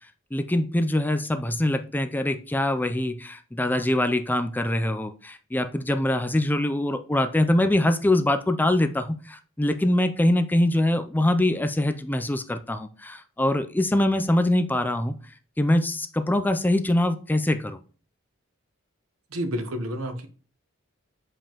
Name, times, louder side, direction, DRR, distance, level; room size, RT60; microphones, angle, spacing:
voice 1, 0.3-15.2 15.6-17.8, left 1 dB, 10° left, 0.4 m, -23 dB
voice 2, 19.3-20.3, equal, 85° right, 0.9 m, -29 dB
7.3 x 4.9 x 2.9 m
head